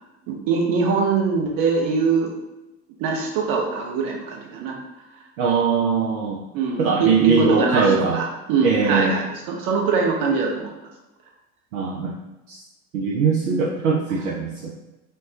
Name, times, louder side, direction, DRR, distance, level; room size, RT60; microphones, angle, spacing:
voice 1, 0.3-2.3 3.0-4.8 6.5-10.7, right 4 dB, 50° right, 1 dB, 1.0 m, -22 dB
voice 2, 5.4-6.4 6.8-8.2 8.6-9.1 11.7-12.1 12.5-12.6 12.9-14.7, right 5 dB, 70° right, -1 dB, 0.6 m, -21 dB
5.2 x 2.2 x 2.8 m, 1.0 s
figure-of-eight pair, 65°, 44 cm